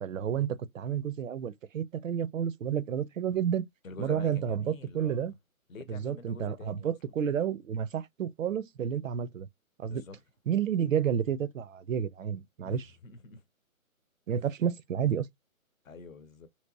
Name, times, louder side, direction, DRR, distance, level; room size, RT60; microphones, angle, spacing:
voice 1, 0.0-3.6 4.0-5.3 5.9-9.5 9.8-10.0 10.5-12.9 14.3-15.3, right 8 dB, 65° right, 0.5 m, -30 dB
voice 2, 3.8-5.4 5.7-7.0 9.8-10.2 12.6-13.4 15.8-16.5, left 3 dB, 70° left, 0.9 m, -46 dB
3.3 x 2.9 x 2.6 m
hypercardioid pair, 175°, 43 cm